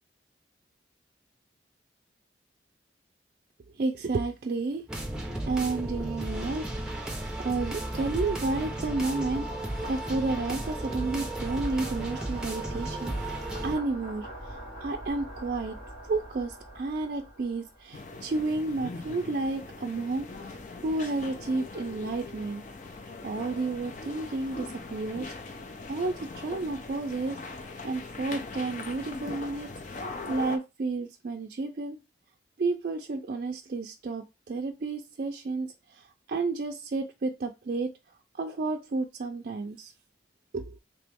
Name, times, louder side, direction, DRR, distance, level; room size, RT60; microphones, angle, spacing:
voice 1, 3.7-4.8 5.4-6.7 6.9-15.8 16.0-22.6 23.2-25.3 25.9-27.4 27.8-29.7 30.3-32.0 32.6-37.9 38.4-39.9 40.5-40.8, right 3 dB, 50° right, 4 dB, 0.4 m, -31 dB
sound 1, 4.9-13.8, right 1 dB, 5° right, 0.6 m, -34 dB
sound 2, 7.9-18.1, right 1 dB, 60° left, 2.3 m, -45 dB
sound 3, 17.9-30.6, left 3 dB, 40° left, 0.5 m, -41 dB
3.1 x 3.0 x 3.4 m, 0.26 s
head